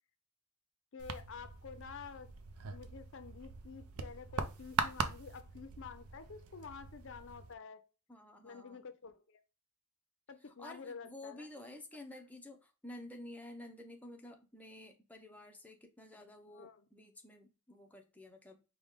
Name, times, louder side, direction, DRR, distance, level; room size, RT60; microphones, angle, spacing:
voice 1, 0.9-2.3 2.7-7.8 8.4-9.4 10.3-11.5 16.4-16.9, left 5 dB, 60° left, 0.6 m, -49 dB
sound 1, 1.0-7.5, right 5 dB, 85° right, 0.5 m, -41 dB
voice 2, 8.1-8.9 10.6-18.6, left 1 dB, 5° left, 0.6 m, -51 dB
4.8 x 2.2 x 3.6 m
head